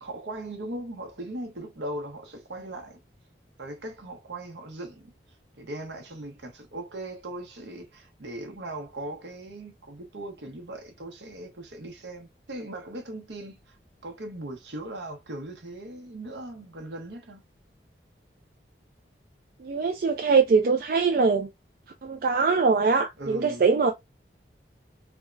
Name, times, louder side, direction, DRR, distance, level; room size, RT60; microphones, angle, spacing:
voice 1, 0.0-3.0 3.6-5.1 5.6-13.8 14.0-17.4 23.2-23.6, right 1 dB, 70° right, 0.9 m, -39 dB
voice 2, 19.6-21.5 22.0-23.9, right 4 dB, 50° right, 0.4 m, -22 dB
3.4 x 2.2 x 2.4 m
head